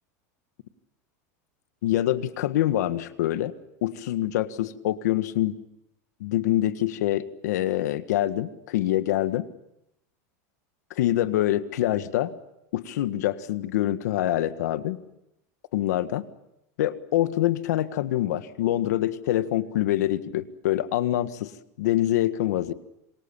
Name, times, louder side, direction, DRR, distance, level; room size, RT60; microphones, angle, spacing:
voice 1, 1.8-3.5 3.8-5.6 6.2-9.5 10.9-12.3 12.7-15.0 15.7-16.2 16.8-21.5 21.8-22.7, left 13 dB, 85° left, 11 dB, 1.6 m, -25 dB
27.0 x 24.0 x 7.3 m, 0.85 s
supercardioid pair, 170°, 9 cm